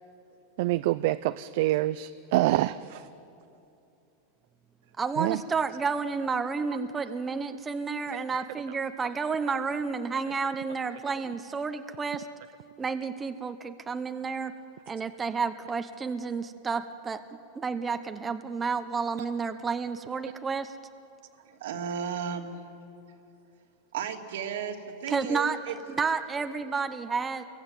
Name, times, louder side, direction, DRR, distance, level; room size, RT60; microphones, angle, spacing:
voice 1, 0.6-3.0 5.2-5.4 8.1-8.2, right 16 dB, 60° right, 13 dB, 0.5 m, -26 dB
voice 2, 5.0-12.3 12.8-14.5 14.9-17.2 17.5-20.7 25.1-25.6 25.9-27.4, right 5 dB, 15° right, 8 dB, 0.9 m, -31 dB
voice 3, 21.4-22.6 23.9-25.8, right 7 dB, 85° right, 2 dB, 3.0 m, -34 dB
29.0 x 22.0 x 9.1 m, 2.8 s
supercardioid pair, 160°, 0 cm